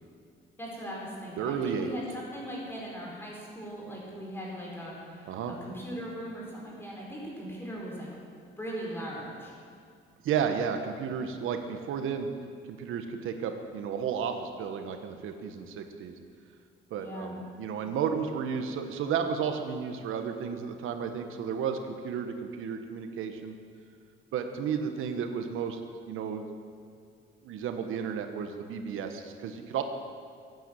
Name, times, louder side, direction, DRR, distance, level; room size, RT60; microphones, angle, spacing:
voice 1, 0.6-8.1 8.6-9.5 17.0-17.4, equal, 10° left, -3 dB, 4.2 m, -39 dB
voice 2, 1.4-1.9 5.3-5.5 10.2-12.3 12.7-16.1 16.9-23.6 24.3-25.8 26.0-26.4 27.4-29.8, right 7 dB, 85° right, 6 dB, 1.3 m, -32 dB
16.0 x 9.3 x 7.8 m, 2.3 s
cardioid pair, 145°, 20 cm